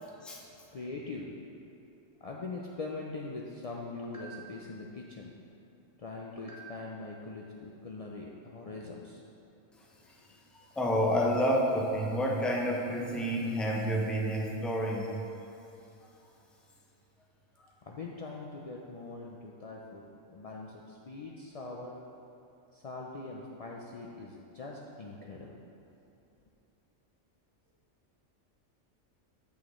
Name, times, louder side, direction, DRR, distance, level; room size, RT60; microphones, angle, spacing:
voice 1, 0.7-1.4 2.2-5.3 6.0-9.2 17.8-20.0 20.3-22.0 22.7-25.6, left 3 dB, 75° left, -2 dB, 0.3 m, -42 dB
voice 2, 10.8-15.1, equal, ahead, -2 dB, 0.4 m, -29 dB
8.4 x 6.4 x 3.1 m, 2.8 s
omnidirectional pair, 1.3 m